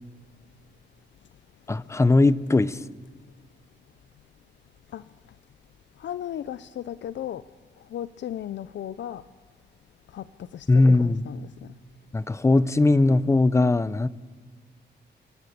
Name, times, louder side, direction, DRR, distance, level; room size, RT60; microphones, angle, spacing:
voice 1, 1.7-2.9 10.7-11.2 12.1-14.1, left 2 dB, 15° left, 17 dB, 0.5 m, -20 dB
voice 2, 6.0-7.4 7.9-9.2 10.1-10.2 10.5-10.7 10.9-11.5, left 11 dB, 80° left, 15 dB, 0.5 m, -35 dB
27.5 x 12.0 x 8.6 m, 1.5 s
wide cardioid pair, 145°, 19 cm